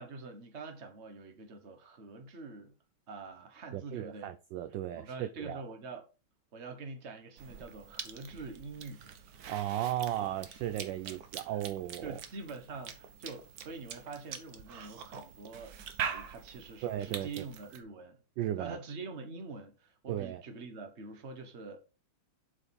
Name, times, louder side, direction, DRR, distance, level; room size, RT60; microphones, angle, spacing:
voice 1, 0.0-2.7 3.1-4.3 4.9-6.0 6.5-9.2 11.0-11.5 12.0-18.2 18.6-21.8, right 4 dB, 35° right, 1.3 m, -45 dB
voice 2, 3.7-5.6 9.5-12.2 16.8-17.5 18.4-18.8 20.1-20.4, right 12 dB, 75° right, 1.0 m, -36 dB
Cough / Chewing mastication, 7.4-17.8, right 7 dB, 55° right, 1.2 m, -44 dB
7.8 x 5.1 x 4.2 m
omnidirectional pair, 2.4 m